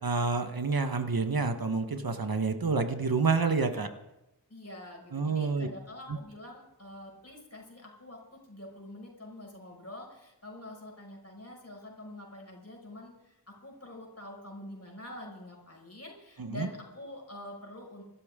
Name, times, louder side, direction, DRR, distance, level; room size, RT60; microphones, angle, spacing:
voice 1, 0.0-3.9 5.1-5.7 6.1-6.2 16.4-16.7, right 4 dB, 65° right, 7 dB, 1.3 m, -28 dB
voice 2, 4.5-18.0, left 1 dB, 40° left, 0 dB, 5.7 m, -46 dB
25.0 x 13.0 x 3.7 m, 0.94 s
wide cardioid pair, 80°, 38 cm